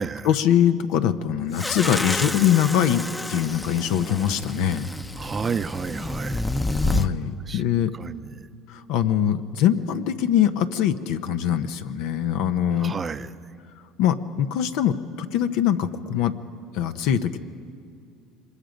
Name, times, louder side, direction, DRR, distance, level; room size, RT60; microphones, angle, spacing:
voice 1, 0.2-3.0 3.3-4.9 6.8-7.9 8.7-12.9 14.0-16.3 16.7-17.4, left 10 dB, 70° left, 9 dB, 0.9 m, -23 dB
sound 1, 1.5-7.1, left 2 dB, 10° left, 0.8 m, -29 dB
voice 2, 5.2-6.5 7.5-7.6 7.9-8.5 12.8-13.3, right 5 dB, 30° right, 12 dB, 0.7 m, -31 dB
25.5 x 22.0 x 5.3 m, 2.4 s
supercardioid pair, 95°, 0 cm